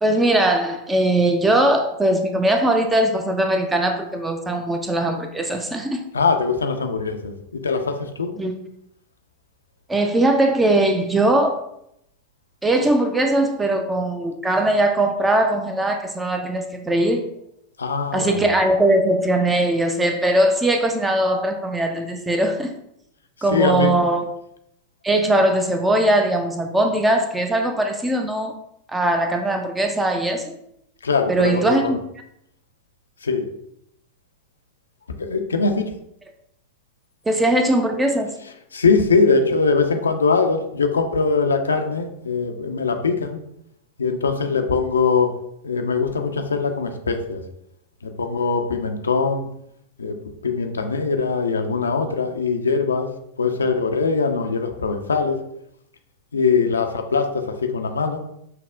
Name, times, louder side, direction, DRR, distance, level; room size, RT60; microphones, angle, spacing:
voice 1, 0.0-6.1 8.4-8.5 9.9-11.6 12.6-17.3 18.1-22.7 23.4-24.3 25.0-28.5 28.9-30.5 31.3-32.0 37.3-38.3, right 1 dB, 10° right, 5 dB, 0.4 m, -20 dB
voice 2, 6.1-8.3 17.8-18.4 23.5-23.9 31.0-31.8 33.2-33.5 35.2-35.8 38.7-43.4 44.0-45.3 45.6-47.4 48.0-49.5 50.0-50.2 50.4-53.1 53.4-55.4 56.3-58.2, left 4 dB, 75° left, 5 dB, 0.4 m, -21 dB
5.6 x 2.0 x 2.4 m, 0.76 s
figure-of-eight pair, 90°, 0 cm